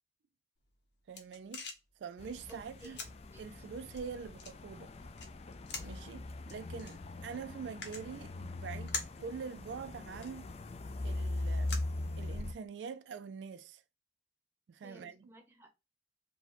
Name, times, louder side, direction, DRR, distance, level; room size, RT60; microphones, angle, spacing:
sound 1, 0.6-12.7, left 4 dB, 70° left, 1.0 m, -48 dB
voice 1, 1.1-1.6 2.0-3.0 3.4-4.9 5.8-10.5 11.0-11.9 12.2-13.8 14.7-15.3, right 6 dB, 85° right, 0.3 m, -45 dB
sound 2, 2.2-12.5, left 2 dB, 35° left, 0.4 m, -41 dB
voice 2, 2.5-3.4 14.8-15.7, equal, 15° right, 0.8 m, -56 dB
4.8 x 2.2 x 4.1 m
head